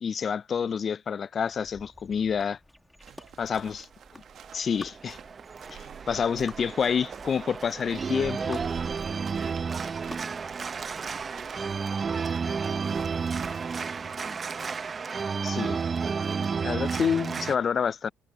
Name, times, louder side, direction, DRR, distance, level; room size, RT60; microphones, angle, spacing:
voice 1, 0.0-2.6 3.4-3.8 4.1-4.2 4.5-5.2 6.1-8.6 15.4-15.8 16.6-18.1, left 7 dB, 45° left, 0.3 m, -28 dB
sound 1, 1.4-16.6, left 1 dB, 5° left, 1.5 m, -53 dB
sound 2, 3.0-13.7, right 9 dB, 60° right, 1.5 m, -48 dB
voice 2, 3.1-3.6 5.7-6.6, right 14 dB, 80° right, 5.7 m, -60 dB
Organ, 4.4-17.6, right 5 dB, 35° right, 0.8 m, -32 dB
supercardioid pair, 80°, 0 cm